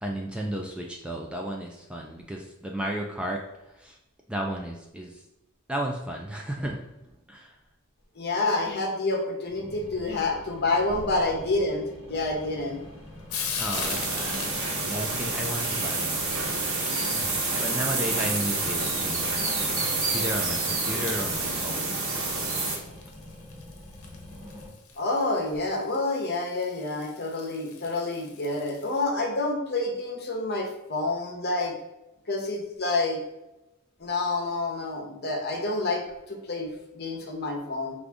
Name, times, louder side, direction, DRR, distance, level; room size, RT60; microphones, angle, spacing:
voice 1, 0.0-4.0 4.3-5.2 5.7-6.9 7.3-7.6 13.6-14.4 14.8-17.0 17.5-19.8 20.1-22.0, right 1 dB, 5° right, 0 dB, 0.3 m, -34 dB
voice 2, 8.2-12.8 25.0-31.7 32.3-33.2 34.0-37.9, left 2 dB, 50° left, 1 dB, 0.9 m, -28 dB
sound 1, 9.5-24.7, left 1 dB, 30° right, 1.3 m, -45 dB
Frying (food), 12.1-29.0, left 6 dB, 80° left, 0.7 m, -43 dB
sound 2, 13.7-22.8, right 3 dB, 70° right, 1.1 m, -28 dB
4.9 x 2.5 x 3.4 m, 0.93 s
head